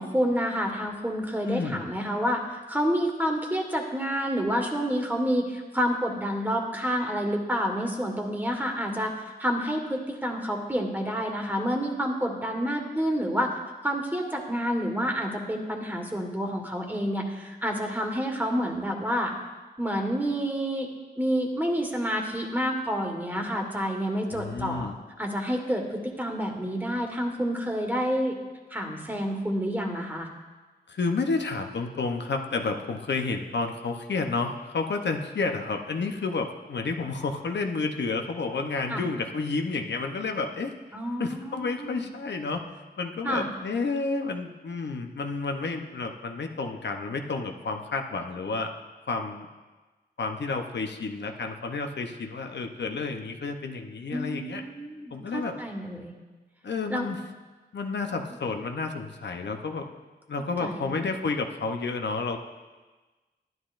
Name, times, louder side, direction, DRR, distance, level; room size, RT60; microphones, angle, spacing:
voice 1, 0.0-13.5 13.8-19.3 19.8-20.9 21.2-24.9 25.2-28.4 28.7-30.3 38.9-39.0 40.9-42.0 43.2-43.4 54.1-56.1 56.9-57.1 60.6-61.0, equal, 10° right, 2 dB, 1.6 m, -29 dB
voice 2, 1.4-1.9 24.3-25.0 30.9-40.7 41.2-42.6 43.0-48.7 49.1-49.5 50.2-54.6 55.1-55.6 56.6-57.2 57.7-59.9 60.3-62.4, left 4 dB, 75° left, 4 dB, 0.8 m, -30 dB
11.5 x 11.0 x 2.5 m, 1.3 s
wide cardioid pair, 70°, 18 cm